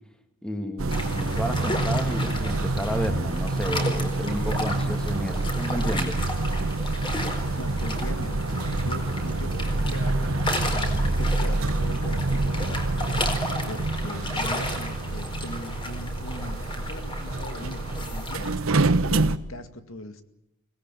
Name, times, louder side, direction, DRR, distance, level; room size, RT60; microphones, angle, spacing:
voice 1, 0.4-6.2, equal, 5° left, 6 dB, 2.3 m, -32 dB
sound 1, 0.8-19.4, right 2 dB, 90° right, 1.1 m, -27 dB
sound 2, 0.9-18.6, left 1 dB, 25° left, 4.4 m, -34 dB
voice 2, 7.6-20.2, left 1 dB, 80° left, 9 dB, 2.1 m, -41 dB
25.0 x 18.5 x 9.1 m, 0.86 s
head